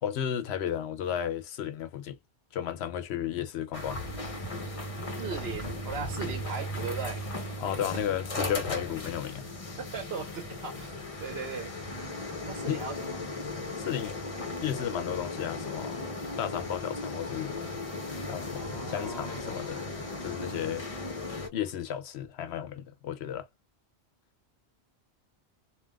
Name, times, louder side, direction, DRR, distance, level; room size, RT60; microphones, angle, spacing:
voice 1, 0.0-2.2 2.5-4.0 7.6-9.4 12.7-12.8 13.8-16.0 16.4-17.6 18.3-19.8 20.2-20.8 21.5-23.5, left 9 dB, 70° left, 0.8 m, -33 dB
sound 1, 3.7-21.5, left 2 dB, 35° left, 0.8 m, -37 dB
voice 2, 5.2-7.2 9.8-10.9 11.2-11.7 12.4-13.1 18.5-19.6, right 5 dB, 65° right, 1.1 m, -38 dB
3.4 x 2.5 x 2.2 m
omnidirectional pair, 1.1 m